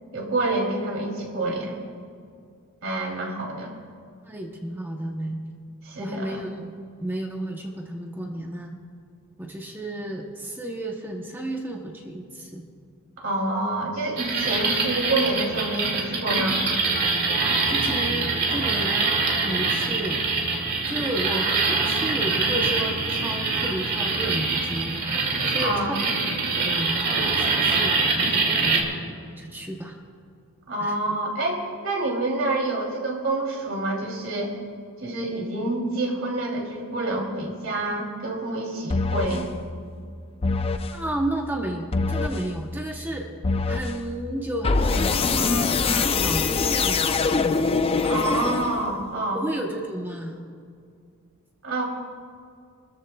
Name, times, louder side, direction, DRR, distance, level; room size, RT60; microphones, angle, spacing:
voice 1, 0.1-1.9 2.8-3.8 5.8-6.4 13.2-16.6 25.6-25.9 30.7-34.5 35.0-39.5 48.0-49.4 51.6-51.8, right 2 dB, 65° right, -1 dB, 3.0 m, -27 dB
voice 2, 4.2-5.4 6.0-6.7 7.0-8.8 9.4-12.6 17.7-19.2 19.4-20.3 20.8-26.1 26.6-28.9 29.4-30.0 30.8-30.9 40.9-43.3 43.7-47.2 49.3-50.4, right 1 dB, 10° right, 1 dB, 0.8 m, -32 dB
sound 1, 14.2-28.8, right 3 dB, 50° right, 2.2 m, -24 dB
sound 2, 38.9-39.5 40.4-41.0 41.9-42.5 43.4-44.0 44.6-49.0, left 4 dB, 25° left, 0.4 m, -23 dB
28.0 x 13.5 x 2.3 m, 2.3 s
head